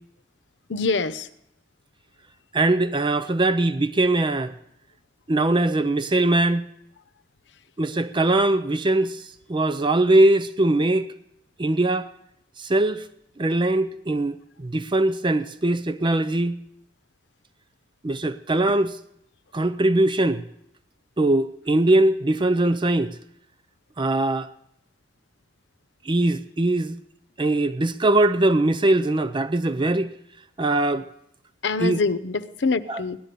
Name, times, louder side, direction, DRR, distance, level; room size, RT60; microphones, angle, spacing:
voice 1, 0.7-1.3 31.6-33.2, left 4 dB, 85° left, 0.8 m, -25 dB
voice 2, 2.5-4.5 5.3-6.6 7.8-11.1 11.6-12.1 12.6-13.1 13.4-16.6 18.0-19.0 19.5-20.4 21.2-23.1 24.0-24.5 26.1-27.0 27.4-30.1 30.6-31.0 31.8-32.0 32.9-33.0, right 2 dB, 25° right, 0.6 m, -21 dB
17.5 x 11.5 x 6.7 m
head